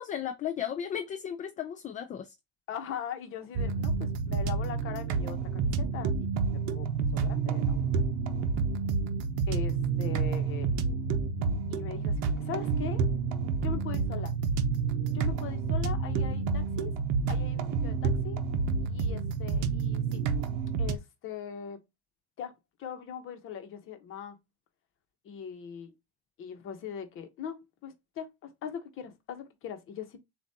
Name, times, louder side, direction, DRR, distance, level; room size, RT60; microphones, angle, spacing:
voice 1, 0.0-2.3, left 9 dB, 25° left, 0.4 m, -35 dB
voice 2, 2.7-7.8 9.5-10.7 11.7-13.0 13.6-14.3 15.1-16.9 17.3-18.4 18.8-20.2 20.8-21.8 22.4-22.5 22.8-24.4 25.2-25.9 26.4-30.2, left 8 dB, 45° left, 1.1 m, -40 dB
sound 1, 3.5-21.0, right 5 dB, 65° right, 0.7 m, -29 dB
7.0 x 2.5 x 2.7 m
cardioid pair, 140°, 31 cm